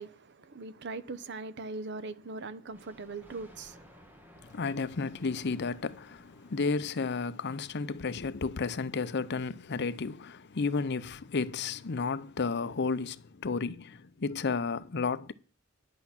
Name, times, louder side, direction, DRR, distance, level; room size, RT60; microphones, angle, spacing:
voice 1, 0.0-3.9, right 3 dB, 55° right, 0.8 m, -41 dB
Thunder, 2.7-8.0, equal, 10° right, 1.5 m, -58 dB
voice 2, 4.4-15.3, left 4 dB, 50° left, 0.6 m, -32 dB
10.5 x 8.1 x 5.9 m
head